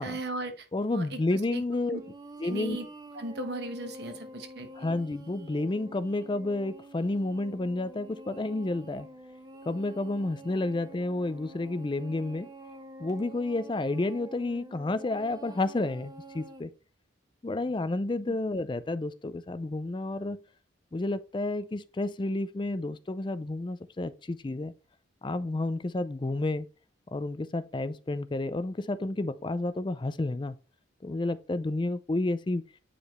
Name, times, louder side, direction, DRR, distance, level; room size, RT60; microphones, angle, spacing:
voice 1, 0.0-1.2 1.5-1.6 1.9-2.0 2.4-2.9 3.1-4.9 18.3-18.4, right 2 dB, 55° right, 1.1 m, -37 dB
voice 2, 0.7-2.0 2.4-2.8 4.8-9.1 9.7-12.5 13.0-16.7 17.4-20.4 20.9-24.7 25.2-26.7 27.1-30.6 31.0-32.6, left 2 dB, 25° left, 0.4 m, -30 dB
sound 1, 1.9-16.6, right 1 dB, 20° right, 0.7 m, -48 dB
8.4 x 5.0 x 3.1 m
head